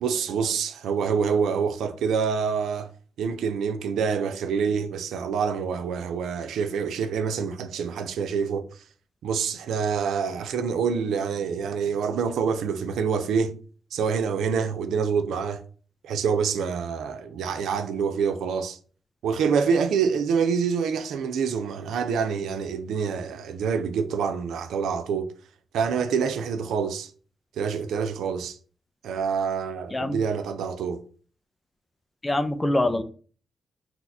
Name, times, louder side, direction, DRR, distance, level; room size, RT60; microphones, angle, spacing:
voice 1, 0.0-2.9 3.2-8.7 9.2-13.6 13.9-15.6 16.0-18.8 19.2-25.3 25.7-27.1 27.6-28.6 29.0-31.0, right 6 dB, 85° right, 0.3 m, -26 dB
voice 2, 32.2-33.0, left 1 dB, 20° left, 0.4 m, -24 dB
2.8 x 2.3 x 3.9 m
cardioid pair, 70°, 0 cm